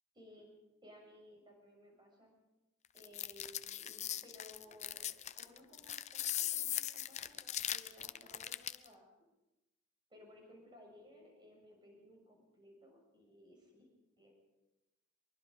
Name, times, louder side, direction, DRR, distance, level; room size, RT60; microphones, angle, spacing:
voice 1, 0.1-0.5 0.8-2.3 2.9-9.1 10.1-13.9 14.2-14.3, left 1 dB, 20° right, 0 dB, 7.0 m, -59 dB
sound 1, 3.0-8.9, left 11 dB, 35° left, 0.7 m, -39 dB
24.0 x 23.5 x 5.1 m, 0.99 s
head